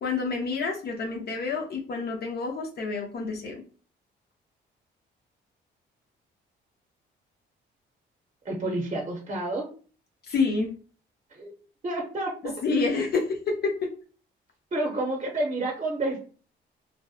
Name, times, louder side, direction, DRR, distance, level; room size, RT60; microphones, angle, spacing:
voice 1, 0.0-3.6 10.3-10.7 12.6-13.7, left 4 dB, 55° left, 2 dB, 0.5 m, -28 dB
voice 2, 8.4-9.7 11.4-11.5 11.8-12.3 14.7-16.2, right 2 dB, 35° right, -1 dB, 0.6 m, -29 dB
2.6 x 2.1 x 2.3 m, 0.40 s
cardioid pair, 90°, 20 cm